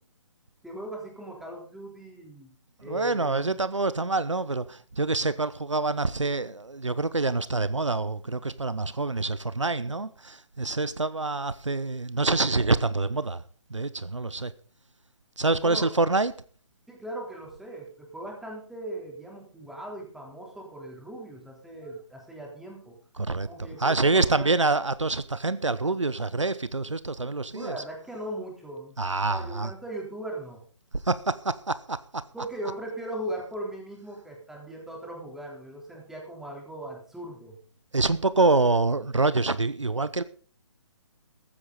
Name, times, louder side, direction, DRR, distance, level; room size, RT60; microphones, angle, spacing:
voice 1, 0.6-2.5 2.8-3.5 15.6-15.9 16.9-23.0 23.5-24.5 27.5-29.0 29.3-30.6 32.3-37.6, right 1 dB, ahead, 3.6 m, -38 dB
voice 2, 2.8-13.4 13.7-14.5 15.4-16.3 23.2-23.5 23.8-27.8 29.0-29.7 31.0-32.2 37.9-40.2, right 3 dB, 85° right, 0.9 m, -26 dB
15.0 x 12.5 x 4.0 m
figure-of-eight pair, 135°, 15 cm